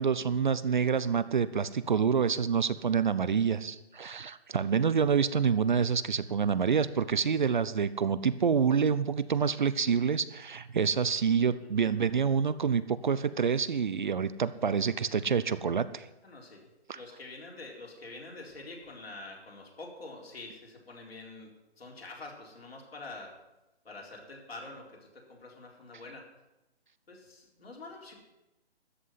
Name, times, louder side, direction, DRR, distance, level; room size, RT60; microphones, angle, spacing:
voice 1, 0.0-16.1 16.9-17.0, right 6 dB, 45° right, 15 dB, 0.6 m, -27 dB
voice 2, 16.2-23.3 23.8-26.3 27.1-28.1, left 2 dB, 65° left, 0 dB, 4.2 m, -46 dB
13.5 x 6.1 x 9.7 m, 0.98 s
hypercardioid pair, 165°, 32 cm